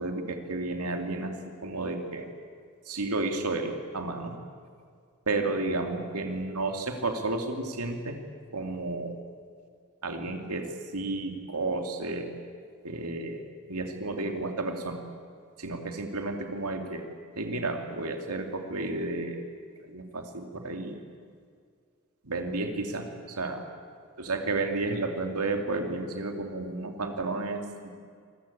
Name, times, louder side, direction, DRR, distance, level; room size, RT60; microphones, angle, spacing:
voice 1, 0.0-2.3 2.9-4.4 5.3-8.2 8.5-9.2 10.0-12.3 12.8-13.4 13.7-15.0 15.6-17.0 17.3-19.4 19.8-21.0 22.2-23.7 24.2-27.9, right 2 dB, 90° right, 4 dB, 2.6 m, -32 dB
27.0 x 20.5 x 8.6 m, 2.2 s
head